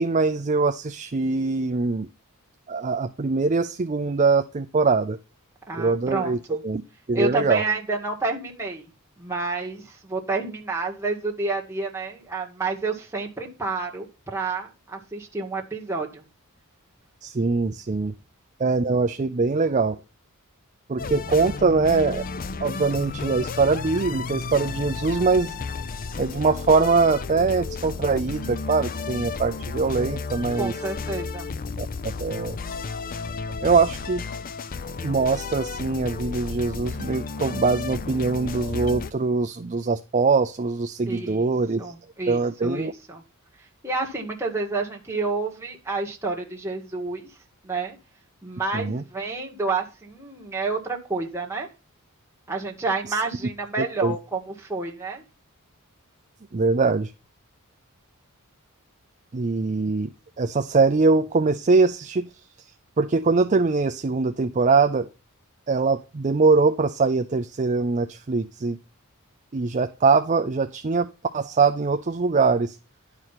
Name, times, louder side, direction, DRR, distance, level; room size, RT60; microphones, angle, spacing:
voice 1, 0.0-2.1 2.7-5.2 5.7-6.4 6.6-6.8 7.1-7.6 17.2-18.1 18.6-20.0 20.9-22.2 22.6-25.5 26.2-30.7 31.8-31.9 32.2-32.6 33.6-34.2 35.0-41.9 42.3-42.9 48.7-49.0 53.1-53.2 53.8-54.1 56.5-57.1 59.3-60.1 60.4-62.3 62.6-62.7 63.0-65.1 65.7-68.8 69.5-72.8, right 4 dB, 35° right, 7 dB, 0.5 m, -22 dB
voice 2, 5.7-6.6 7.1-8.9 9.2-16.2 30.5-31.5 41.1-41.5 41.8-43.2 43.8-47.3 47.6-48.0 48.4-51.7 52.5-55.2, right 3 dB, 10° right, -1 dB, 1.8 m, -29 dB
sound 1, 21.0-39.1, left 4 dB, 40° left, 0.5 m, -33 dB
10.5 x 4.8 x 5.8 m, 0.31 s
head